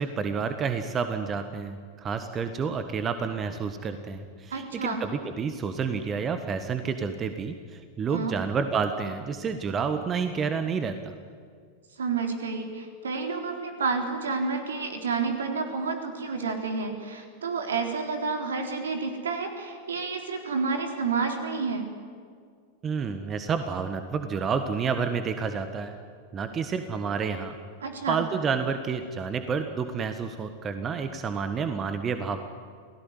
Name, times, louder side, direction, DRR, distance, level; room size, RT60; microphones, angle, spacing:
voice 1, 0.0-11.1 22.8-26.0 26.3-27.6 28.1-32.4, right 5 dB, 25° right, 9 dB, 1.5 m, -29 dB
voice 2, 4.5-5.0 8.1-8.3 12.0-21.9 27.8-28.2, right 4 dB, 65° right, 4 dB, 3.9 m, -30 dB
28.5 x 18.0 x 9.8 m, 2.1 s
figure-of-eight pair, 90°, 0 cm